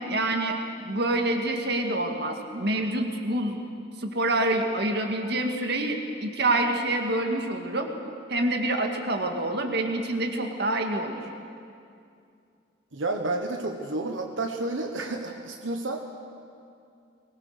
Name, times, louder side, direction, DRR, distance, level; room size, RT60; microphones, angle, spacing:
voice 1, 0.0-3.6 4.0-7.9 8.3-11.2, right 1 dB, 60° right, 4 dB, 2.0 m, -27 dB
voice 2, 12.9-16.0, right 2 dB, 90° right, 4 dB, 1.2 m, -30 dB
22.5 x 20.0 x 6.7 m, 2.5 s
head